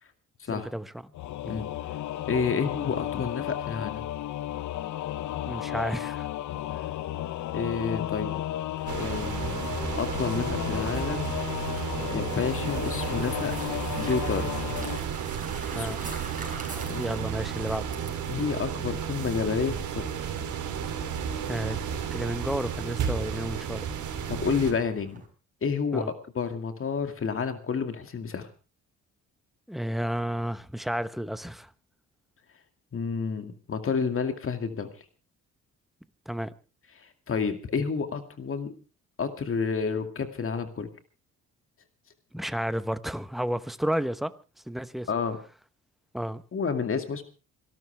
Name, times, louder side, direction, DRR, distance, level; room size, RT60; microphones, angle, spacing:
voice 1, 0.5-1.1 1.4-1.6 5.5-6.3 15.7-16.0 17.0-17.9 21.5-21.8 22.1-23.9 25.9-26.1 29.7-31.7 36.3-36.5 42.3-44.3 44.7-45.1 46.1-46.4, equal, ahead, 1.0 m, -31 dB
Singing / Musical instrument, 1.1-15.0, left 13 dB, 75° left, 0.9 m, -33 dB
voice 2, 2.3-4.0 7.5-8.4 9.0-9.7 10.0-11.3 12.1-13.5 14.0-14.5 15.7-16.0 16.8-17.1 18.3-20.0 24.3-25.2 25.6-28.5 32.9-34.9 37.0-38.7 39.2-40.9 45.1-45.4 46.5-47.2, left 5 dB, 45° left, 2.2 m, -30 dB
sound 1, 8.8-25.3, right 3 dB, 25° right, 6.0 m, -46 dB
sound 2, 8.9-24.7, right 8 dB, 75° right, 3.2 m, -33 dB
27.5 x 12.5 x 3.4 m
cardioid pair, 90°, 30 cm